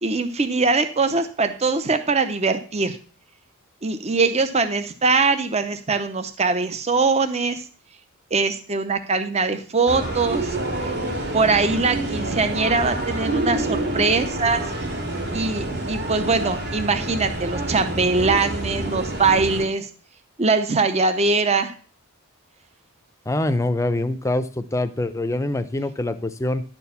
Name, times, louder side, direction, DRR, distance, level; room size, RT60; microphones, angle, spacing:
voice 1, 0.0-3.0 3.8-7.6 8.3-10.6 11.3-14.6 15.3-19.9 20.4-21.7, right 4 dB, 30° right, 8 dB, 0.7 m, -22 dB
sound 1, 9.9-19.6, right 1 dB, 50° right, 2.4 m, -27 dB
voice 2, 23.3-26.6, left 2 dB, 15° left, 10 dB, 0.6 m, -24 dB
11.0 x 4.6 x 6.9 m, 0.41 s
head